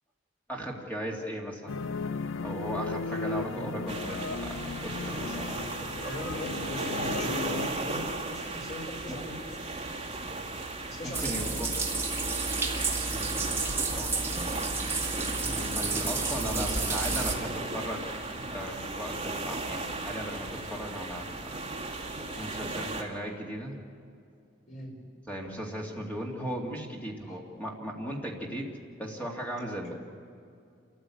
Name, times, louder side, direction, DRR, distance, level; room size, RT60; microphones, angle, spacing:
voice 1, 0.5-1.8 2.4-6.0 9.1-9.2 11.0-11.7 14.0-14.5 15.7-18.1 18.5-21.6 22.4-23.8 25.3-28.7 29.0-29.9, equal, 10° left, -1 dB, 2.4 m, -37 dB
sound 1, 1.7-7.7, left 4 dB, 80° left, 0.5 m, -35 dB
voice 2, 2.8-4.0 6.0-9.8 10.9-11.6 15.5-17.5 24.7-25.0 27.2-27.4 29.6-29.9, left 1 dB, 40° left, -1 dB, 4.9 m, -42 dB
sound 2, 3.9-23.0, right 2 dB, 30° right, 2.1 m, -36 dB
sound 3, 11.1-17.3, right 3 dB, 10° right, 1.7 m, -31 dB
28.0 x 14.5 x 8.6 m, 2.4 s
head